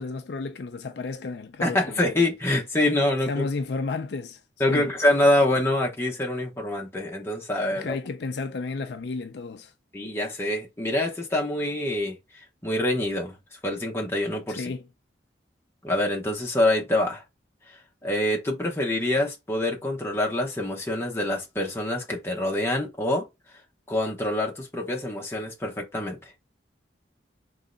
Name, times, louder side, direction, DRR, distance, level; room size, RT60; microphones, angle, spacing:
voice 1, 0.0-2.0 3.3-4.4 4.7-4.9 7.7-9.7 14.5-14.8, left 4 dB, 70° left, 0.4 m, -32 dB
voice 2, 1.6-3.5 4.6-8.0 9.9-13.4 13.6-14.7 15.8-17.2 18.0-23.3 23.9-26.3, left 1 dB, 15° left, 0.9 m, -25 dB
3.7 x 3.2 x 3.8 m
head